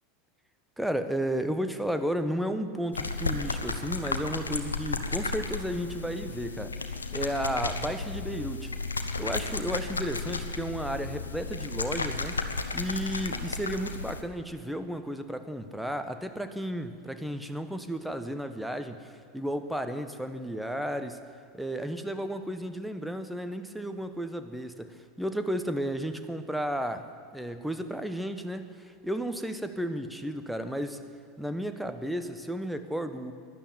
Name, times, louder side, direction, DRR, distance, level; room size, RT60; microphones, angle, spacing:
voice 1, 0.8-8.7 9.2-12.4 12.7-19.1 19.3-21.2 21.5-31.0 31.4-33.3, equal, ahead, 9 dB, 1.2 m, -33 dB
sound 1, 2.9-14.2, left 3 dB, 85° left, 1.0 m, -33 dB
12.5 x 11.0 x 9.1 m, 2.2 s
figure-of-eight pair, 85°, 0 cm